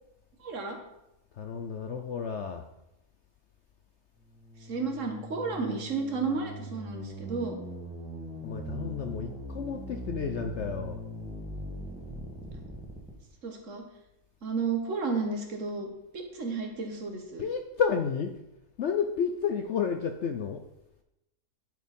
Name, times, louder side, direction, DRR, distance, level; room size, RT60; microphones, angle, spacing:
voice 1, 0.4-0.8 4.6-7.6 13.4-13.8 14.4-15.9 16.1-17.4, right 4 dB, 60° right, 3 dB, 1.7 m, -32 dB
voice 2, 1.4-2.6 8.4-11.0 17.4-18.4 18.8-20.6, left 6 dB, 60° left, 5 dB, 0.8 m, -31 dB
sound 1, 4.3-13.1, right 1 dB, 5° right, 1.5 m, -40 dB
10.5 x 4.6 x 5.3 m, 0.89 s
omnidirectional pair, 1.5 m